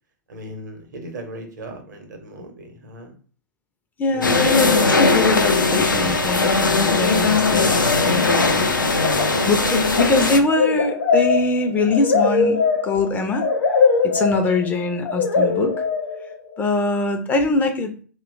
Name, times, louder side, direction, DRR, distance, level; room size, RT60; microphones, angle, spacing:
voice 1, 0.3-3.1 4.1-4.5, right 1 dB, 65° right, 5 dB, 0.8 m, -37 dB
voice 2, 4.0-8.6 9.5-13.5 14.1-15.7 16.6-17.9, left 3 dB, 15° left, 5 dB, 0.4 m, -22 dB
sound 1, 4.2-10.4, left 3 dB, 85° left, 0.4 m, -19 dB
sound 2, 7.5-7.9 8.2-8.6 8.9-16.5, left 4 dB, 70° left, 0.8 m, -22 dB
2.5 x 2.2 x 2.5 m, 0.41 s
figure-of-eight pair, 100°, 10 cm